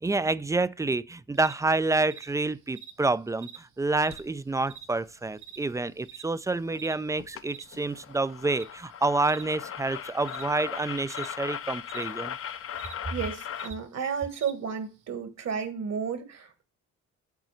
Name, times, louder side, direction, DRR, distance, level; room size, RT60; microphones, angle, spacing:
voice 1, 0.0-12.3, right 3 dB, 10° right, 0.3 m, -28 dB
sound 1, 1.3-15.1, right 8 dB, 80° right, 1.1 m, -48 dB
sound 2, 4.1-4.3 6.8-6.9 7.2-7.4 7.7-13.7, left 9 dB, 50° left, 0.6 m, -38 dB
voice 2, 13.1-16.6, right 6 dB, 60° right, 1.7 m, -32 dB
8.2 x 4.0 x 6.3 m
cardioid pair, 90°, 30 cm